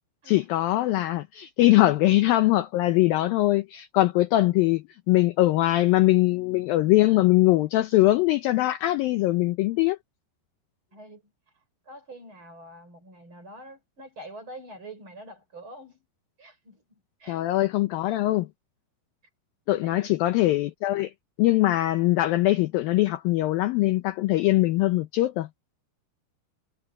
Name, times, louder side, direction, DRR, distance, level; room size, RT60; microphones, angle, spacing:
voice 1, 0.3-10.0 17.3-18.5 19.7-21.1 21.4-25.5, left 17 dB, 80° left, 2.1 m, -22 dB
voice 2, 10.9-11.3 11.9-16.0 16.4-17.4 19.8-20.1, right 1 dB, 30° right, 6.2 m, -45 dB
omnidirectional pair, 5.0 m